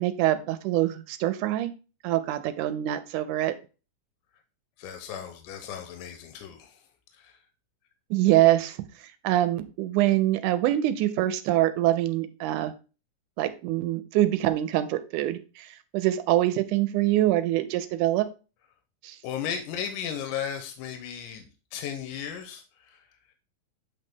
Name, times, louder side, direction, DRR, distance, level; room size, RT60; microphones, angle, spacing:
voice 1, 0.0-1.7 2.0-3.6 8.1-8.8 9.2-12.7 13.4-18.3 19.0-19.2, right 14 dB, 80° right, 2.0 m, -24 dB
voice 2, 4.8-6.9 7.1-7.4 19.2-23.1, left 8 dB, 85° left, 2.3 m, -36 dB
8.0 x 4.0 x 3.6 m
omnidirectional pair, 3.7 m